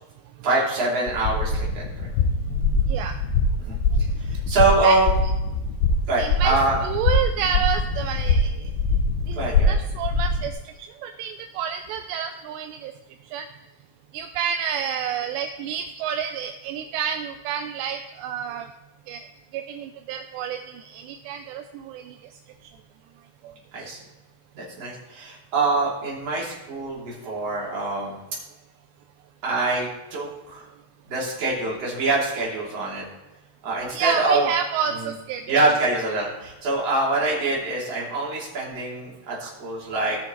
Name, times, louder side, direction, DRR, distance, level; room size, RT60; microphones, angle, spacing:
voice 1, 0.4-1.8 3.6-3.8 4.2-5.1 6.1-6.8 9.4-9.7 23.7-24.0 24.5-28.2 29.4-30.7 31.1-33.1 33.6-34.5 35.0-35.1 35.5-40.2, right 2 dB, 40° right, -5 dB, 3.6 m, -24 dB
sound 1, 1.1-10.5, left 3 dB, 75° left, 2.7 m, -23 dB
voice 2, 2.5-3.2 4.8-5.0 6.2-6.6 6.8-8.7 9.3-9.4 9.7-10.5 11.0-12.9 13.3-13.5 14.1-18.7 19.1-19.3 19.5-22.2 23.4-23.5 33.9-35.7 39.4-39.5, right 8 dB, 85° right, 6 dB, 2.7 m, -29 dB
17.5 x 6.3 x 3.2 m, 1.0 s
omnidirectional pair, 5.1 m